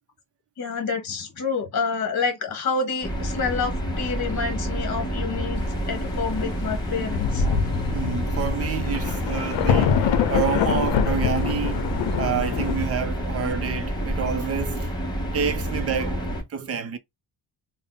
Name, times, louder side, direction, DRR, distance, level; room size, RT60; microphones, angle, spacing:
voice 1, 0.6-7.5, left 5 dB, 40° left, 1.0 m, -28 dB
sound 1, 3.0-16.4, equal, 10° left, 0.7 m, -28 dB
Thunder, 6.7-6.8 7.1-12.9, left 7 dB, 90° left, 0.6 m, -25 dB
voice 2, 7.9-14.9 15.3-17.0, right 7 dB, 35° right, 0.4 m, -29 dB
3.5 x 2.0 x 3.8 m
wide cardioid pair, 175°, 43 cm